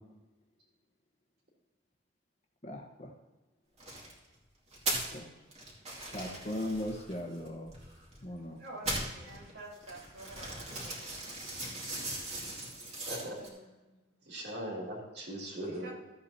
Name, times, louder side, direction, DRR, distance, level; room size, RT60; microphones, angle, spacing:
voice 1, 2.6-3.1 5.1-5.3 6.1-7.7 8.2-8.6, left 1 dB, 35° left, 1 dB, 1.2 m, -38 dB
sound 1, 3.8-4.1 4.7-5.2 5.5-8.3 8.7-13.5, right 2 dB, 30° right, 2.4 m, -39 dB
voice 2, 8.2-11.4 13.1-14.0 15.6-15.9, right 1 dB, 90° right, -6 dB, 3.3 m, -50 dB
voice 3, 14.3-15.9, right 1 dB, 55° right, -4 dB, 3.1 m, -39 dB
14.0 x 8.5 x 2.8 m, 1.1 s
head